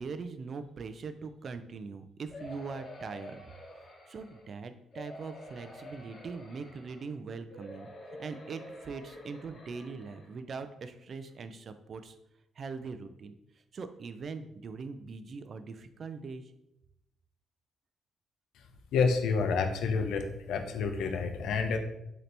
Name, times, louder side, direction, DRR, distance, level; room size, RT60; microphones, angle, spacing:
voice 1, 0.0-3.4 3.8-12.2 12.6-13.3 13.7-16.5, right 4 dB, 50° right, 10 dB, 0.3 m, -41 dB
sound 1, 2.3-4.5 4.9-7.1 7.5-10.3 10.9-11.0 11.3-11.4, left 1 dB, 50° left, 1.1 m, -48 dB
voice 2, 18.9-21.8, left 5 dB, 80° left, 5 dB, 0.5 m, -29 dB
4.0 x 2.8 x 3.3 m, 0.83 s
cardioid pair, 90°, 0 cm